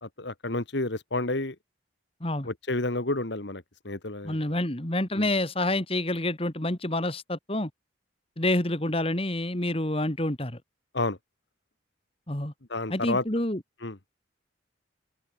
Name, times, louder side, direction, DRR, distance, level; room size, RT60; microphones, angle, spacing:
voice 1, 0.0-1.6 2.4-4.6 5.2-5.3 10.9-11.2 12.7-13.2 13.8-14.0, left 2 dB, 65° left, 1.8 m, -30 dB
voice 2, 4.2-7.7 8.4-10.6 12.3-12.5 12.9-13.6, left 1 dB, 30° left, 2.2 m, -28 dB
head